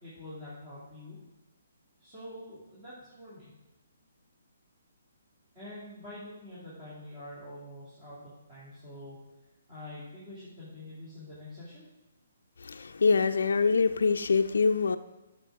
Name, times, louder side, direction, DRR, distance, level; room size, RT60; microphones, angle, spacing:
voice 1, 0.0-1.2 2.0-3.5 5.5-9.2 9.7-11.9, left 1 dB, 20° right, -12 dB, 2.5 m, -46 dB
voice 2, 12.6-15.0, left 4 dB, 85° left, 8 dB, 0.4 m, -24 dB
10.0 x 6.5 x 3.6 m, 0.97 s
hypercardioid pair, 165°, 0 cm